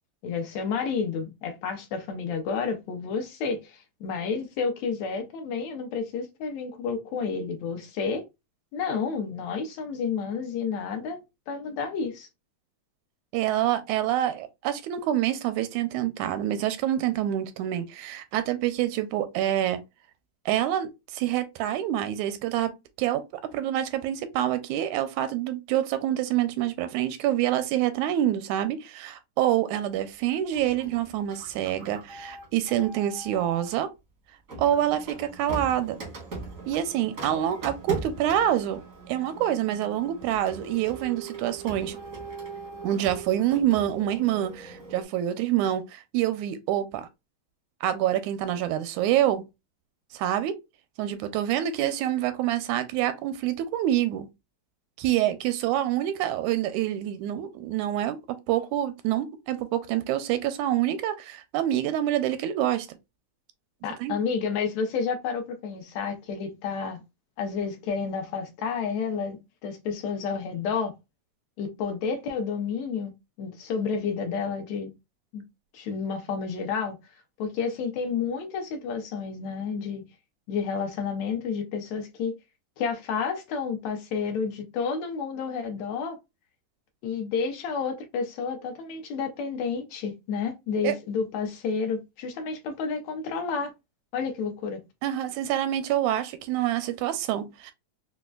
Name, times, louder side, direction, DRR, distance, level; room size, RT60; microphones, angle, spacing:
voice 1, 0.2-8.2 8.7-12.3 63.8-67.0 67.4-70.9 71.6-75.0 75.3-75.4 75.7-77.0 77.4-80.0 80.5-82.4 82.8-86.2 87.0-93.7 94.1-94.8, left 5 dB, 75° left, 1.8 m, -30 dB
voice 2, 13.3-19.8 20.5-22.7 23.0-23.2 23.5-33.9 34.6-36.0 36.7-38.8 39.1-42.0 42.8-47.1 47.8-49.4 50.1-50.6 51.0-54.3 55.0-62.9 64.0-64.2 90.8-90.9 95.0-97.7, right 12 dB, 85° right, 1.9 m, -26 dB
Printer, 30.5-33.8 34.5-45.0, right 3 dB, 60° right, 0.8 m, -40 dB
5.0 x 2.2 x 2.3 m
omnidirectional pair, 3.3 m